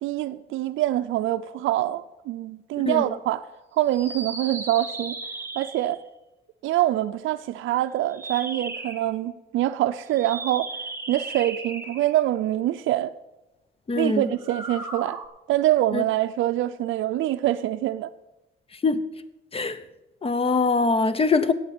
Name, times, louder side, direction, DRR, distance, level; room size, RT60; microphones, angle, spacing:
voice 1, 0.0-3.5 3.8-5.2 5.6-6.0 6.6-10.7 11.1-13.1 14.0-15.2 15.5-18.1, right 14 dB, 80° right, 0.5 m, -25 dB
sound 1, 3.9-6.0 8.0-9.1 10.1-12.3 14.3-15.3, right 3 dB, 10° right, 1.7 m, -36 dB
voice 2, 13.9-14.3 15.9-16.0 18.8-19.0 19.5-19.8 20.2-21.5, left 4 dB, 30° left, 0.9 m, -22 dB
8.7 x 8.4 x 8.9 m
cardioid pair, 90°, 20 cm